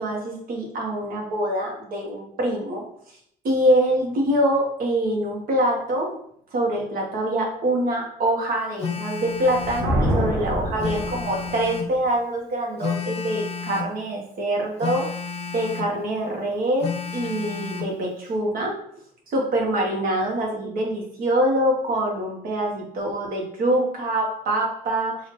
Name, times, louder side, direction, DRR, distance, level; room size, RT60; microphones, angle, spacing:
voice 1, 0.0-2.8 3.4-6.2 6.5-15.1 15.5-18.8 19.3-25.2, right 1 dB, 55° right, 0 dB, 1.2 m, -24 dB
Telephone, 8.8-9.9 10.8-12.0 12.8-14.0 14.8-15.9 16.8-17.9, left 6 dB, 35° left, 0.6 m, -31 dB
Thunder, 9.4-11.7, equal, 85° right, 1.2 m, -26 dB
4.4 x 2.7 x 3.1 m, 0.68 s
cardioid pair, 110°, 17 cm